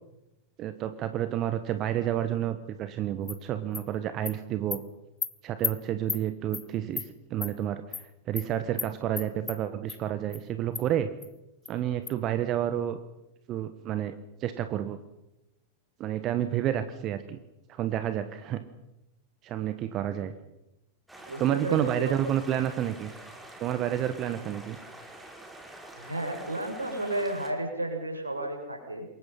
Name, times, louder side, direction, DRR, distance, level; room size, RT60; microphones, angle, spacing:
voice 1, 0.6-4.8 5.4-11.1 11.7-13.0 13.5-15.0 16.0-17.4 17.7-18.6 19.4-20.3 21.4-23.1 23.6-24.8, right 11 dB, 35° right, 11 dB, 1.4 m, -30 dB
Animal, 3.3-3.4 3.7-3.8 4.3-4.4 4.7-4.8 5.2-5.3 5.6-5.7 6.1-6.2 6.5-6.6 7.0-7.1 7.4-7.5 7.9-8.0 8.4-8.5 8.8-8.9 9.2-9.6 9.9-10.0 10.3-10.4 10.7-10.8 11.2-11.3 11.7-11.8 12.1-12.2, left 5 dB, 15° left, 1.5 m, -32 dB
sound 1, 21.1-27.5, right 1 dB, 5° right, 5.3 m, -46 dB
voice 2, 21.3-22.3 25.9-29.1, right 1 dB, 80° right, 3 dB, 6.9 m, -33 dB
28.0 x 22.5 x 5.7 m, 0.93 s
figure-of-eight pair, 90°, 0 cm